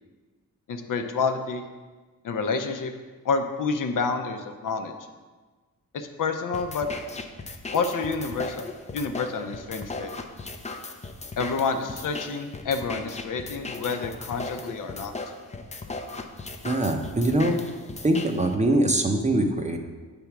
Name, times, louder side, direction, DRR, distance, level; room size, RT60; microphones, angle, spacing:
voice 1, 0.7-1.6 2.2-2.9 3.2-4.9 5.9-6.9 7.7-8.6 8.9-10.1 11.4-15.1, left 4 dB, 70° left, 6 dB, 0.7 m, -28 dB
sound 1, 6.5-18.6, left 3 dB, 20° left, 0.5 m, -37 dB
voice 2, 16.6-17.6 18.0-19.8, right 1 dB, 20° right, 4 dB, 0.7 m, -23 dB
8.1 x 3.5 x 5.8 m, 1.3 s
wide cardioid pair, 105°, 33 cm